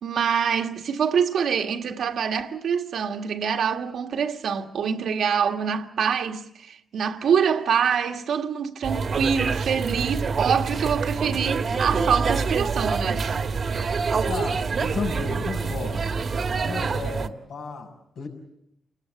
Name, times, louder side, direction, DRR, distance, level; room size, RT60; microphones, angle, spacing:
voice 1, 0.0-13.4 13.9-14.0, right 7 dB, 75° right, 1.8 m, -25 dB
sound 1, 8.8-17.3, right 5 dB, 50° right, 1.5 m, -26 dB
voice 2, 14.3-16.2 16.6-18.3, left 4 dB, 85° left, 6.7 m, -33 dB
29.5 x 19.5 x 7.8 m
cardioid pair, 120°, 0 cm